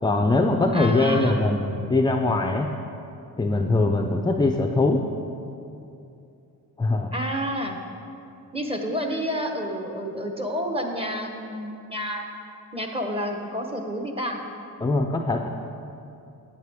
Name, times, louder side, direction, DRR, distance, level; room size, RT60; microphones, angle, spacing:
voice 1, 0.0-2.7 3.4-5.0 6.8-7.1 14.8-15.5, left 2 dB, 10° left, 3 dB, 0.4 m, -22 dB
voice 2, 0.7-1.5 7.1-7.8 8.5-12.3 12.7-14.4, equal, 15° right, 3 dB, 1.0 m, -29 dB
9.4 x 8.6 x 3.6 m, 2.7 s
cardioid pair, 85°, 36 cm